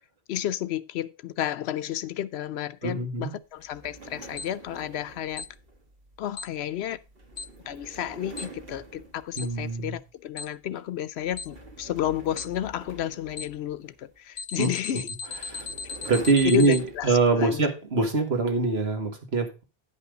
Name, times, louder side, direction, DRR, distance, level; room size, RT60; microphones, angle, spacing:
voice 1, 0.3-5.5 6.2-7.0 7.7-15.1 16.5-17.6, left 11 dB, 85° left, 0.9 m, -32 dB
voice 2, 2.8-3.3 9.4-10.0 14.6-14.7 15.4-15.7 16.0-19.6, right 3 dB, 80° right, 2.0 m, -24 dB
Office Chair Rolling, 3.6-10.1 10.5-10.8 11.2-14.2 15.0-17.4, right 2 dB, 65° right, 1.7 m, -47 dB
Alarm, 4.4-4.5 5.4-5.5 6.4-6.5 7.4-7.5 8.4-8.5 9.4-9.5 10.4-10.5 11.4-11.5 12.4-12.5 13.4-13.5 14.4-16.8, left 4 dB, 50° left, 0.8 m, -35 dB
9.9 x 5.5 x 5.0 m
omnidirectional pair, 1.1 m